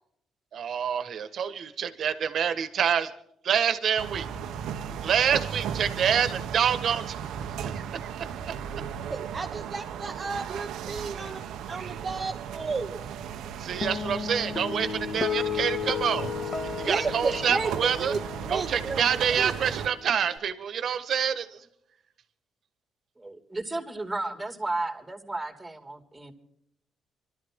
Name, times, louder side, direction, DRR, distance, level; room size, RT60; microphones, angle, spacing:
voice 1, 0.5-3.1 3.4-4.3 4.9-7.2 7.7-7.8 8.2-8.5 11.2-11.3 11.7-12.0 13.6-16.3 16.6-18.1 18.5-21.7, right 8 dB, 60° right, 10 dB, 1.5 m, -27 dB
sound 1, 4.0-19.9, right 8 dB, 85° right, 0.9 m, -36 dB
voice 2, 9.1-13.1 16.6-18.2 18.5-19.0 19.4-19.5, right 4 dB, 35° right, 3 dB, 1.0 m, -33 dB
Guitar, 13.8-20.4, left 7 dB, 40° left, 1.4 m, -34 dB
voice 3, 23.2-26.3, right 2 dB, 10° right, 5 dB, 2.7 m, -33 dB
25.0 x 13.0 x 3.7 m, 0.72 s
cardioid pair, 90°, 0 cm